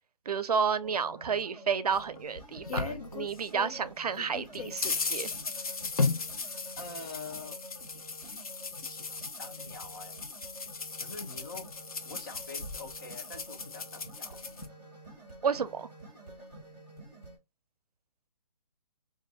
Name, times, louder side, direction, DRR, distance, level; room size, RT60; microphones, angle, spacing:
voice 1, 0.3-5.3 15.4-15.9, right 6 dB, 70° right, 0.5 m, -31 dB
sound 1, 0.8-17.4, right 1 dB, 5° left, 0.5 m, -50 dB
sound 2, 1.9-3.8 4.1-14.7, left 4 dB, 60° left, 0.8 m, -36 dB
voice 2, 6.8-7.6 8.3-8.4 8.8-10.3 11.0-11.7 12.0-14.4, left 3 dB, 30° left, 0.7 m, -45 dB
3.3 x 2.6 x 3.9 m
hypercardioid pair, 175°, 21 cm